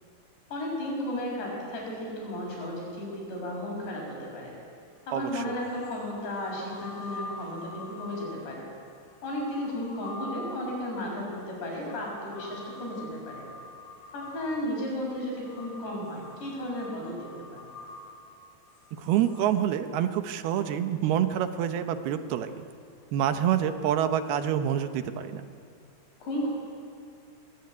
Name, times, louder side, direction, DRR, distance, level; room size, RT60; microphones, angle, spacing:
voice 1, 0.5-4.5 5.1-8.7 9.2-13.5 14.1-17.7 26.2-26.5, left 1 dB, 90° left, -1 dB, 9.1 m, -34 dB
sound 1, 5.0-5.1 5.6-19.5, left 2 dB, 55° left, 5.8 m, -45 dB
voice 2, 5.1-5.6 19.0-22.6 23.1-25.5, right 10 dB, 75° right, 9 dB, 2.9 m, -27 dB
24.0 x 20.0 x 9.6 m, 2.4 s
omnidirectional pair, 4.8 m